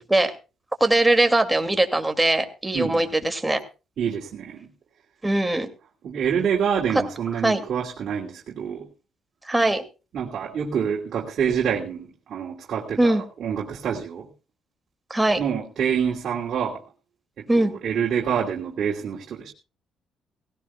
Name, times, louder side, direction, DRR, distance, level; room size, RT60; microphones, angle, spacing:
voice 1, 0.8-3.6 5.2-5.7 7.4-7.6 9.5-9.8 13.0-13.2 15.1-15.4 17.5-17.7, right 1 dB, 10° right, 7 dB, 2.5 m, -21 dB
voice 2, 2.7-3.1 4.0-4.7 6.0-8.9 10.1-14.3 15.4-16.8 17.4-19.5, right 7 dB, 65° right, -2 dB, 2.9 m, -27 dB
18.5 x 17.0 x 2.4 m, 0.32 s
cardioid pair, 90°, 0 cm